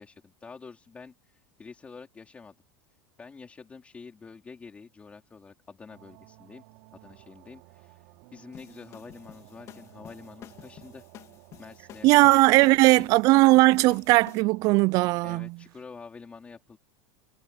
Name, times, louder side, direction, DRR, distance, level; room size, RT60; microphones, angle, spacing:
voice 1, 0.0-2.6 3.2-6.6 6.9-8.0 8.3-11.1 11.6-13.1 15.2-16.8, left 5 dB, 15° left, 4.2 m, -47 dB
sound 1, 5.9-15.2, right 23 dB, 55° right, 3.7 m, -55 dB
sound 2, 8.5-14.4, left 11 dB, 35° left, 3.2 m, -49 dB
voice 2, 12.0-15.6, right 21 dB, 40° right, 0.3 m, -19 dB
supercardioid pair, 155°, 9 cm